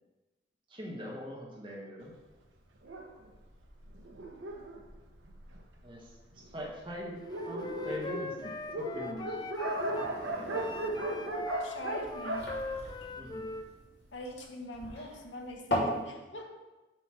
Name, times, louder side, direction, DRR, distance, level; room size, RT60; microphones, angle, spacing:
voice 1, 0.7-2.1 5.8-9.4 13.2-13.6, equal, 25° right, -3 dB, 1.2 m, -43 dB
Dog, 2.8-5.8 6.5-6.6 6.9-7.0 7.2-13.6, right 1 dB, 85° right, 0.8 m, -37 dB
Wind instrument woodwind instrument, 7.4-10.1 10.5-13.7, left 2 dB, 20° left, 0.3 m, -41 dB
sound 1, 9.5-16.0, equal, 65° left, 2.2 m, -38 dB
voice 2, 11.6-12.5 14.1-16.6, left 1 dB, 85° left, 1 dB, 1.1 m, -43 dB
7.7 x 3.0 x 6.0 m, 1.1 s
head